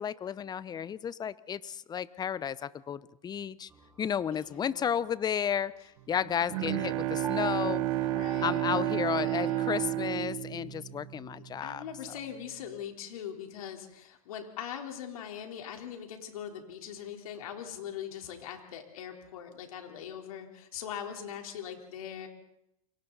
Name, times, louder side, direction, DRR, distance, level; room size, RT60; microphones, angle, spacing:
voice 1, 0.0-3.7 4.0-11.8, left 8 dB, 20° left, 18 dB, 0.8 m, -33 dB
sound 1, 3.7-8.9, right 5 dB, 10° right, 4.5 m, -48 dB
voice 2, 4.3-4.9 7.8-9.7 11.4-22.3, left 9 dB, 75° left, 3 dB, 4.0 m, -42 dB
Bowed string instrument, 6.2-11.6, right 15 dB, 60° right, 1.1 m, -31 dB
29.0 x 24.5 x 4.1 m, 0.81 s
hypercardioid pair, 110°, 19 cm